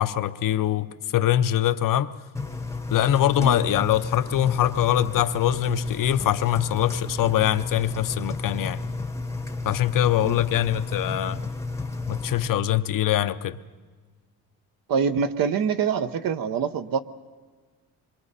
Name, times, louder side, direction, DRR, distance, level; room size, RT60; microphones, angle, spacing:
voice 1, 0.0-2.1 2.9-8.8 9.6-11.4 12.1-13.6, left 12 dB, 60° left, 0.7 m, -23 dB
Engine, 2.3-12.5, left 3 dB, 10° left, 0.8 m, -32 dB
voice 2, 14.9-17.0, right 6 dB, 65° right, 0.9 m, -25 dB
26.5 x 23.5 x 4.1 m
cardioid pair, 130°, 37 cm